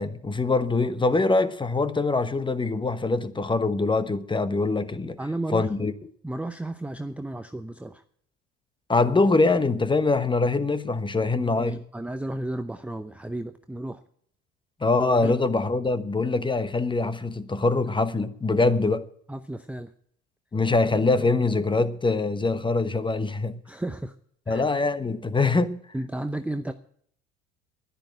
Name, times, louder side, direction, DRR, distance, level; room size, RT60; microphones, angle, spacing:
voice 1, 0.0-5.2 5.5-5.9 8.9-11.8 14.8-19.1 20.5-23.6 24.5-25.8, left 3 dB, 15° left, 1.1 m, -23 dB
voice 2, 5.2-5.7 6.2-8.0 11.3-14.0 15.2-15.3 16.2-16.3 19.3-19.9 23.6-24.2 24.5-24.6 25.9-26.7, right 1 dB, 5° right, 0.7 m, -33 dB
11.0 x 10.5 x 7.9 m
hypercardioid pair, 75°, 34 cm